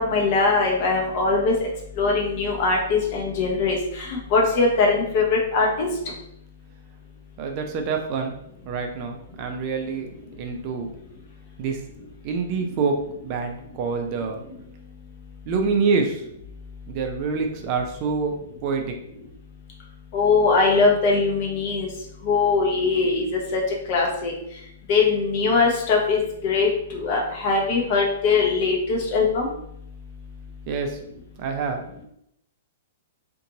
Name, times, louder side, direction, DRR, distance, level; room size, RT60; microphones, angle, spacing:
voice 1, 0.0-1.5 2.0-5.9 20.1-21.9 22.2-23.6 23.9-24.3 24.9-29.5, left 4 dB, 40° left, -1 dB, 0.7 m, -21 dB
voice 2, 7.4-8.3 8.6-10.1 10.4-10.9 11.6-11.8 12.2-13.0 13.2-14.4 15.5-16.2 16.9-18.3 18.6-18.9 30.7-31.0 31.4-31.8, right 5 dB, 35° right, 3 dB, 0.4 m, -26 dB
2.6 x 2.5 x 2.6 m, 0.74 s
figure-of-eight pair, 110°, 0 cm